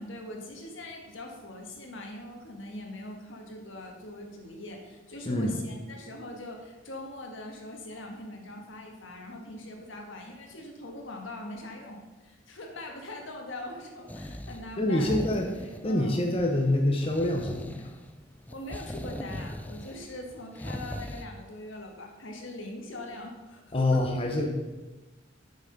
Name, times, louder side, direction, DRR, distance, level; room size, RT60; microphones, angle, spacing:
voice 1, 0.0-15.2 15.9-16.2 18.5-24.1, left 1 dB, 75° left, 1 dB, 1.7 m, -42 dB
voice 2, 5.2-5.6 14.8-17.8 23.7-24.5, left 1 dB, 30° left, 1 dB, 0.8 m, -26 dB
sound 1, 14.1-21.3, left 1 dB, 10° left, 0.4 m, -40 dB
8.4 x 6.2 x 5.3 m, 1.1 s
head